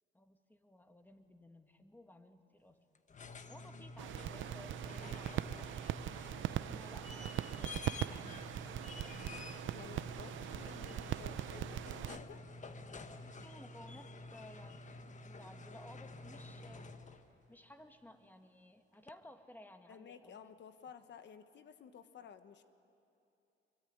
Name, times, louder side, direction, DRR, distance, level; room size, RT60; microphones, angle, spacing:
voice 1, 0.1-2.8 3.5-5.9 6.4-9.3 13.2-16.8 17.5-20.4, left 1 dB, 10° left, 6 dB, 1.9 m, -57 dB
sound 1, 2.9-17.3 19.1-19.2, left 2 dB, 40° left, 1.4 m, -49 dB
sound 2, 4.0-12.2, right 13 dB, 75° right, 0.6 m, -41 dB
voice 2, 9.7-12.4 19.9-22.6, left 7 dB, 65° left, 10 dB, 1.3 m, -54 dB
24.0 x 23.0 x 9.6 m, 2.7 s
cardioid pair, 90°, 20 cm